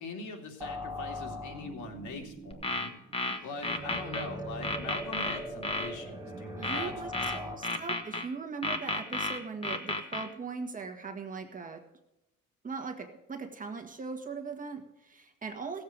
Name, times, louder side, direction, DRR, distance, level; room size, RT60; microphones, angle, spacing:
voice 1, 0.0-2.9 3.4-7.8, left 3 dB, 70° left, 3 dB, 2.6 m, -42 dB
sound 1, 0.6-7.6, equal, 10° right, 2.0 m, -41 dB
sound 2, 2.5-4.3 4.6-5.9 6.6-8.3 8.6-10.3, left 2 dB, 20° left, 1.3 m, -32 dB
voice 2, 6.6-11.8 12.6-15.8, right 5 dB, 25° right, 4 dB, 1.7 m, -40 dB
17.0 x 7.8 x 5.1 m, 0.88 s
cardioid pair, 130°, 31 cm